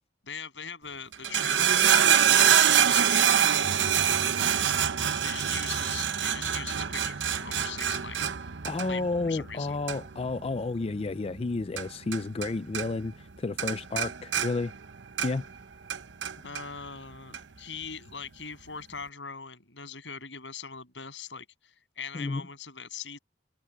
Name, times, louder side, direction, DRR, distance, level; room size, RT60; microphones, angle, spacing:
voice 1, 0.2-1.9 2.7-3.7 5.2-8.5 8.8-9.7 16.4-23.2, left 6 dB, 85° left, 8.0 m, -41 dB
sound 1, 1.1-12.5 12.7-13.3 13.6-15.5 15.9-16.6 17.3-17.4, right 9 dB, 90° right, 0.9 m, -25 dB
voice 2, 8.6-14.7 15.2-15.4 22.1-22.4, left 3 dB, 35° left, 0.4 m, -31 dB
head